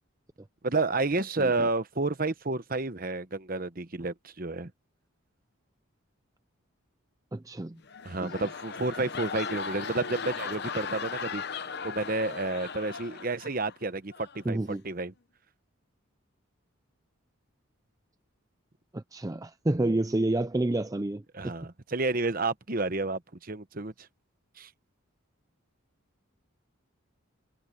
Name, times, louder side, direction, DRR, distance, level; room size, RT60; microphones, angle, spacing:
voice 1, 0.6-4.7 8.0-11.4 11.8-15.1 21.3-23.9 24.6-24.7, right 3 dB, 40° right, 1.0 m, -30 dB
voice 2, 7.3-7.8 8.2-8.3 14.5-14.8 18.9-21.5, right 2 dB, 15° right, 0.4 m, -29 dB
sound 1, 7.8-13.8 14.1-14.4, left 5 dB, 50° left, 0.9 m, -37 dB
head